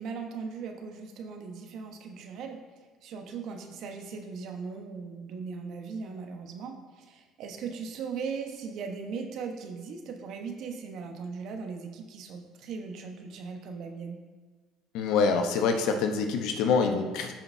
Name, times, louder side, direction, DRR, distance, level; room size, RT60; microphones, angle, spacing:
voice 1, 0.0-2.6 3.0-14.2, right 5 dB, 65° right, 4 dB, 1.2 m, -38 dB
voice 2, 14.9-17.3, left 5 dB, 75° left, 5 dB, 0.9 m, -25 dB
13.0 x 5.7 x 2.7 m, 1.4 s
supercardioid pair, 75°, 0 cm